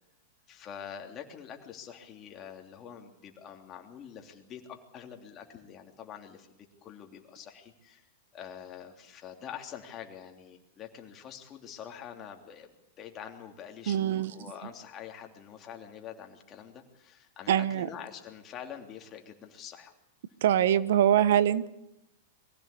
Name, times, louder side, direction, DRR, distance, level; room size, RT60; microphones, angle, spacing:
voice 1, 0.5-6.5 6.8-8.1 8.3-19.9, left 8 dB, 30° left, 3 dB, 3.2 m, -45 dB
voice 2, 13.9-14.3 17.5-17.9 20.4-21.7, right 10 dB, 70° right, 17 dB, 1.0 m, -23 dB
23.0 x 16.0 x 8.6 m, 0.88 s
hypercardioid pair, 125°, 0 cm